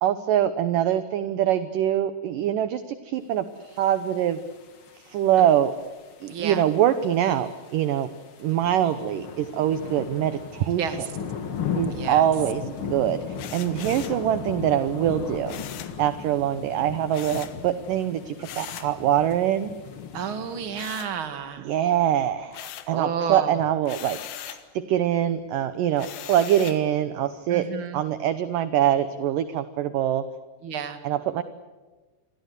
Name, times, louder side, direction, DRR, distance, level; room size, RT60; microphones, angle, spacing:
voice 1, 0.0-4.4 5.1-5.7 6.2-8.1 8.4-11.1 11.8-15.6 16.0-19.7 21.6-24.2 24.5-27.7 27.9-30.2 31.0-31.4, right 11 dB, 70° right, 12 dB, 2.1 m, -24 dB
sound 1, 3.8-20.9, left 6 dB, 45° left, 1.8 m, -37 dB
voice 2, 6.3-6.6 10.8-11.0 11.9-12.2 20.1-21.7 22.9-23.5 27.5-28.0 30.6-31.0, right 7 dB, 40° right, 8 dB, 2.3 m, -31 dB
sound 2, 13.4-14.2 15.5-16.0 17.1-17.6 18.4-19.0 20.7-21.6 22.0-23.0 23.8-24.7 26.0-26.9, left 11 dB, 85° left, 3.6 m, -40 dB
28.5 x 23.5 x 8.2 m, 1.3 s
omnidirectional pair, 4.8 m